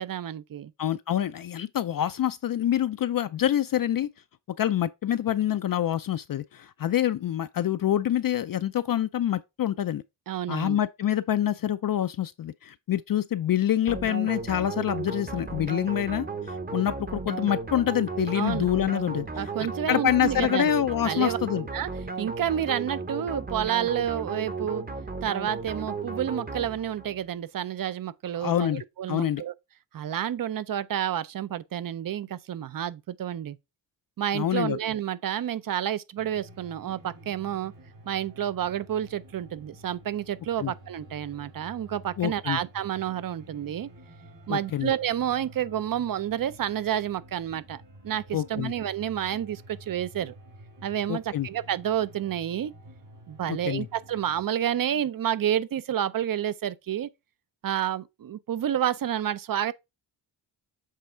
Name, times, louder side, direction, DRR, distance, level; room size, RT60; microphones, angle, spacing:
voice 1, 0.0-0.7 10.3-10.8 18.3-18.7 19.4-20.7 21.0-21.4 21.7-21.9 22.2-24.8 25.2-29.5 29.9-33.6 34.2-37.7 38.1-43.9 44.5-50.3 50.8-52.7 53.3-57.1 57.6-59.7, right 10 dB, 50° right, 0.6 m, -29 dB
voice 2, 0.8-4.1 4.6-10.0 10.5-19.2 19.9-21.7 28.4-28.8 29.1-29.4 34.3-34.8 40.6-40.7 42.2-42.6 44.5-44.9 48.3-48.7 51.1-51.5 53.5-53.9, left 11 dB, 50° left, 0.4 m, -26 dB
sound 1, 13.9-27.2, right 3 dB, 20° right, 0.8 m, -35 dB
sound 2, 36.2-54.5, right 1 dB, 65° right, 3.4 m, -50 dB
7.6 x 3.5 x 4.4 m
cardioid pair, 80°, 45 cm